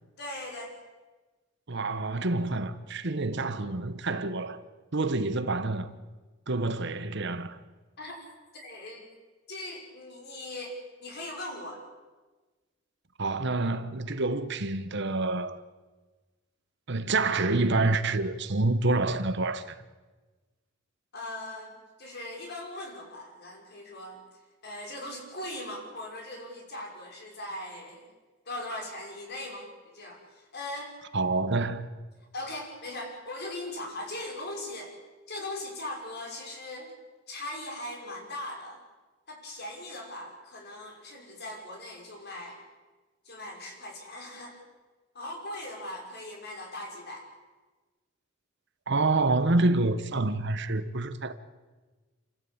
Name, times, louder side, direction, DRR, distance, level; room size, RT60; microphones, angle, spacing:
voice 1, 0.2-0.7 8.0-8.2 8.5-9.1 9.5-11.8 21.1-24.2 24.6-28.0 28.5-31.0 32.3-34.9 35.3-36.9 37.3-38.8 39.3-42.6 43.2-44.6 45.1-47.3, left 1 dB, 55° left, 5.8 m, -39 dB
voice 2, 1.7-4.6 4.9-5.9 6.5-7.6 13.2-15.6 16.9-19.8 31.1-31.9 48.9-51.3, right 2 dB, 60° right, 1.2 m, -27 dB
29.0 x 14.0 x 8.8 m
head